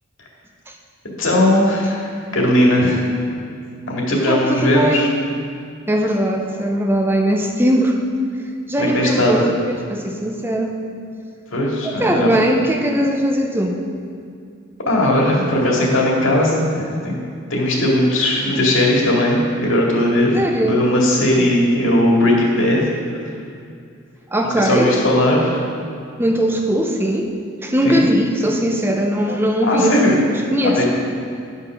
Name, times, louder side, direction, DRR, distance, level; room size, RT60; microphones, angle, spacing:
voice 1, 1.2-3.1 3.9-5.1 8.8-9.4 11.5-12.3 14.9-17.2 17.5-22.8 24.6-25.6 27.8-28.1 29.6-30.1 30.6-30.8, left 1 dB, 70° left, -3 dB, 2.2 m, -17 dB
voice 2, 4.3-5.1 5.9-8.0 8.7-9.5 9.9-10.8 11.8-13.8 20.3-20.8 24.3-25.0 26.2-27.3 27.6-30.8, equal, 10° right, 2 dB, 0.8 m, -19 dB
11.0 x 5.6 x 6.1 m, 2.4 s
head